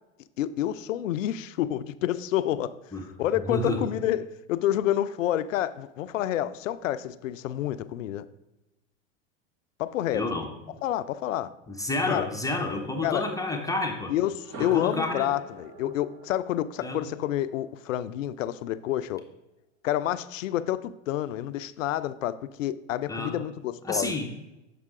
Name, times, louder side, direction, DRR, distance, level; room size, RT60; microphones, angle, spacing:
voice 1, 0.4-2.7 3.2-8.3 9.8-10.3 10.8-11.5 12.1-12.3 13.0-13.3 14.1-19.2 19.8-24.1, left 12 dB, 80° left, 0.5 m, -28 dB
voice 2, 3.5-3.8 10.1-10.5 11.7-14.1 14.6-15.3 16.8-17.0 23.1-23.3 23.8-24.3, left 2 dB, 10° left, 0.7 m, -29 dB
sound 1, 14.3-18.3, right 2 dB, 50° right, 1.8 m, -45 dB
7.5 x 5.6 x 3.6 m
hypercardioid pair, 105°, 38 cm